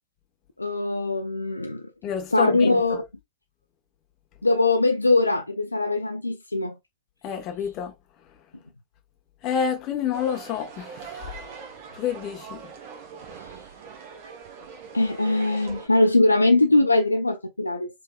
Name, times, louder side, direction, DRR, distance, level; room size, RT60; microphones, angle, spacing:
voice 1, 0.6-1.8 2.3-3.0 4.4-6.7 14.9-17.9, left 2 dB, 85° left, 0.4 m, -21 dB
voice 2, 2.0-3.0 7.2-7.9 9.4-11.4 11.9-12.7, left 8 dB, 35° left, 1.0 m, -29 dB
sound 1, 10.1-15.9, right 6 dB, 50° right, 0.9 m, -42 dB
3.3 x 3.3 x 2.3 m
figure-of-eight pair, 90°, 0 cm